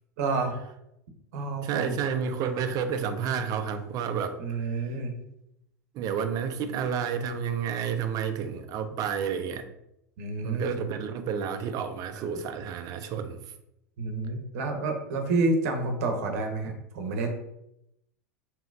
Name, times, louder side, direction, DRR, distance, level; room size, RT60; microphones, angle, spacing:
voice 1, 0.2-0.6 1.3-2.0 4.4-5.1 10.2-10.8 14.0-17.4, right 3 dB, 60° right, 4 dB, 0.9 m, -29 dB
voice 2, 1.6-4.4 4.7-4.8 5.9-9.7 10.4-13.4, right 7 dB, 40° right, 9 dB, 0.5 m, -30 dB
4.9 x 2.9 x 2.5 m, 0.81 s
figure-of-eight pair, 80°, 9 cm